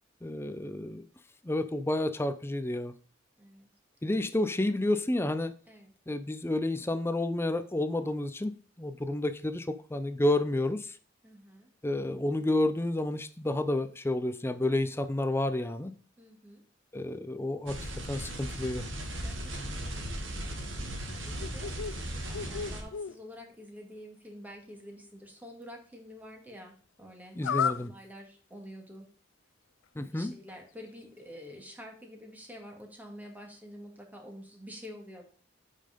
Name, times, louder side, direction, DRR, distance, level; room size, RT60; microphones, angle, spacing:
voice 1, 0.2-1.0 1.4-2.9 4.0-5.5 6.1-11.0 11.8-16.0 16.9-17.8 18.1-18.9 27.4-27.9 30.0-30.3, left 1 dB, 10° left, 11 dB, 0.5 m, -30 dB
voice 2, 3.4-3.7 4.2-4.4 5.7-5.9 11.2-11.7 16.2-16.6 19.2-21.7 22.2-29.1 29.9-35.2, equal, 10° right, 2 dB, 2.2 m, -48 dB
sound 1, 17.7-22.8, right 1 dB, 80° right, 2.2 m, -37 dB
sound 2, 21.1-22.0 22.3-23.2 27.4-27.9, left 7 dB, 85° left, 0.5 m, -32 dB
8.7 x 5.7 x 5.1 m, 0.42 s
head